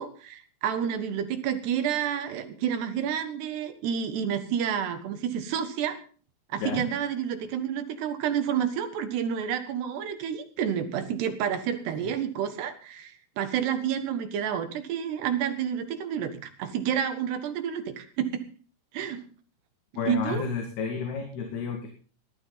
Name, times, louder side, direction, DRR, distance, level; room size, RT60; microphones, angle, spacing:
voice 1, 0.0-6.0 6.5-18.4 18.9-19.2 20.1-20.5, right 8 dB, 80° right, 8 dB, 3.7 m, -29 dB
voice 2, 20.0-21.9, left 6 dB, 70° left, 3 dB, 4.3 m, -31 dB
18.5 x 12.5 x 4.1 m, 0.40 s
omnidirectional pair, 4.7 m